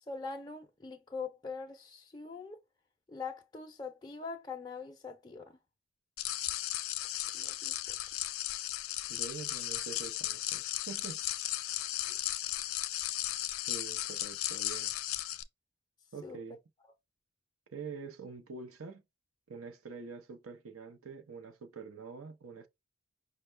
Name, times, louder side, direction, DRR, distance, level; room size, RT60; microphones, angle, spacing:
voice 1, 0.1-2.6 3.1-5.6 7.3-8.0 12.1-12.2 16.2-16.4, left 4 dB, 20° left, 0.4 m, -43 dB
sound 1, 6.2-15.4, left 14 dB, 85° left, 0.5 m, -36 dB
voice 2, 9.1-11.2 13.7-14.9 16.1-16.6 17.7-19.0 19.5-22.7, right 5 dB, 80° right, 0.7 m, -45 dB
5.3 x 2.2 x 3.2 m
head